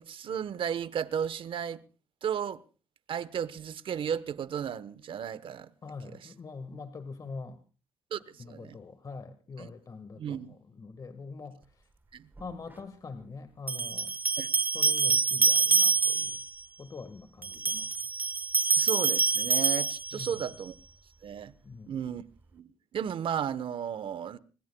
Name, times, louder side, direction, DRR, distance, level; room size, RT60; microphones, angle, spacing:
voice 1, 0.0-1.8 2.2-2.6 3.1-5.7 6.0-6.3 8.1-8.8 9.6-9.7 10.2-10.6 12.1-12.3 14.4-14.5 18.8-20.7 21.2-21.5 21.9-22.2 22.5-24.4, right 8 dB, 60° right, 1.1 m, -34 dB
voice 2, 5.8-7.6 8.4-11.6 12.4-14.1 14.7-16.4 16.8-17.9 20.1-20.3 21.6-22.0, left 4 dB, 40° left, 1.6 m, -44 dB
sound 1, 12.4-12.5 13.7-16.5 17.4-20.5, right 5 dB, 20° right, 1.3 m, -26 dB
27.0 x 21.0 x 2.3 m
cardioid pair, 80°, 10 cm